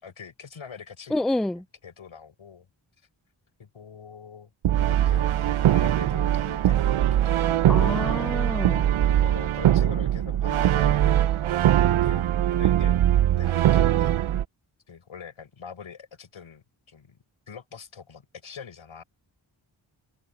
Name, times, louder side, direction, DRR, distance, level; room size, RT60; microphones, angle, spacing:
voice 1, 0.0-1.2 1.5-2.7 3.6-4.5 4.9-5.3 5.7-6.8 7.1-7.9 8.9-11.0 11.8-13.0 13.3-14.2 14.9-17.2 17.5-19.0, left 6 dB, 85° left, 6.4 m, -44 dB
voice 2, 1.1-1.6 7.7-8.9, left 1 dB, ahead, 0.4 m, -28 dB
Brass instrument, 4.6-14.4, right 11 dB, 90° right, 0.7 m, -21 dB
wide cardioid pair, 80°, 47 cm